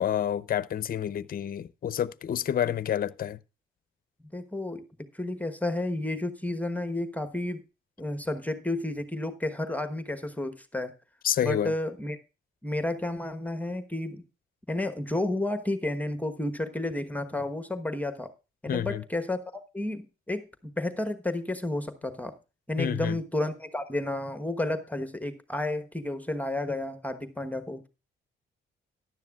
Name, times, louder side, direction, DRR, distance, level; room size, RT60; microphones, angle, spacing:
voice 1, 0.0-3.4 11.2-11.7 18.7-19.0 22.8-23.2, left 10 dB, 45° left, 0.6 m, -29 dB
voice 2, 4.3-7.6 8.0-10.9 11.4-12.2 12.6-14.2 14.7-18.3 18.6-22.4 22.7-27.9, left 1 dB, 5° left, 1.1 m, -31 dB
14.0 x 11.0 x 2.4 m
cardioid pair, 90°, 20 cm